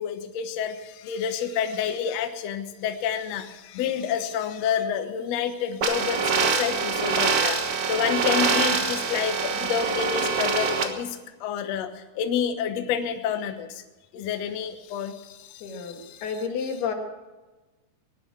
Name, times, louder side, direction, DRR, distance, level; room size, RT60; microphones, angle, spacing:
voice 1, 0.0-13.8 14.1-16.3, left 8 dB, 90° left, 7 dB, 1.4 m, -29 dB
sound 1, 5.8-10.8, right 5 dB, 75° right, 1.2 m, -24 dB
voice 2, 15.6-16.9, left 6 dB, 70° left, 3 dB, 3.8 m, -31 dB
18.5 x 11.0 x 6.1 m, 1.1 s
omnidirectional pair, 4.8 m